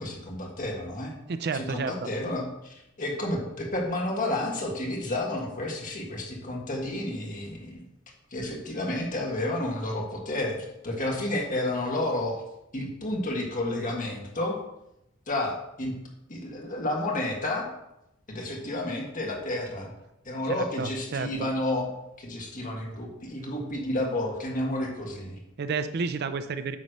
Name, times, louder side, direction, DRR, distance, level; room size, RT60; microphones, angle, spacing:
voice 1, 0.0-1.1 1.5-7.8 8.3-12.4 12.7-14.6 15.3-15.9 16.3-17.7 18.3-19.9 20.3-21.9 22.2-25.4, left 1 dB, 40° left, 0 dB, 1.7 m, -31 dB
voice 2, 1.3-2.1 20.8-21.5 25.6-26.8, right 5 dB, 50° right, 10 dB, 0.4 m, -31 dB
9.4 x 3.1 x 6.5 m, 0.86 s
head